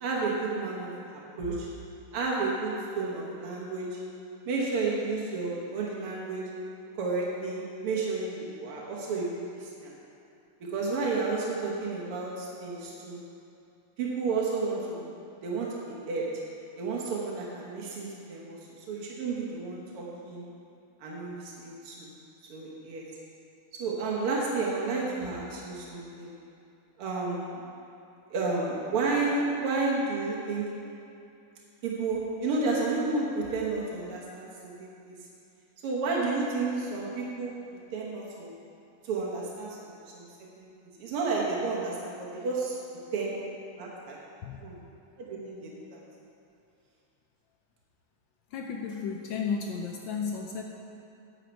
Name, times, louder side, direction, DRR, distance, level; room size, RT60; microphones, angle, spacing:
voice 1, 0.0-0.9 1.4-1.7 2.1-4.0 4.5-6.4 7.0-9.9 10.7-13.2 14.0-15.1 15.4-16.3 16.8-18.6 18.9-20.5 21.0-22.1 22.5-23.0 23.8-26.3 27.0-27.6 28.3-30.7 31.8-35.2 35.8-37.5 37.9-38.5 39.0-40.3 40.6-40.7 41.0-42.8 43.1-43.3 43.8-44.2 44.6-44.8 45.2-46.0, right 3 dB, 80° right, -4 dB, 2.1 m, -31 dB
voice 2, 48.5-50.6, left 5 dB, 75° left, 2 dB, 1.2 m, -33 dB
9.4 x 8.0 x 4.5 m, 2.6 s
omnidirectional pair, 2.4 m